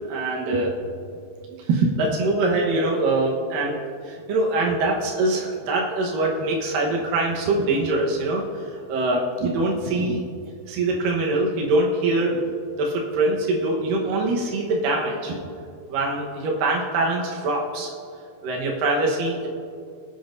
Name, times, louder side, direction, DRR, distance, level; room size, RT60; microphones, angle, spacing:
voice 1, 0.1-0.7 1.7-3.8 4.0-10.2 10.7-12.4 12.8-15.4 15.9-17.9 18.4-19.5, right 2 dB, 90° right, -2 dB, 1.9 m, -23 dB
21.5 x 8.5 x 2.6 m, 2.4 s
omnidirectional pair, 5.8 m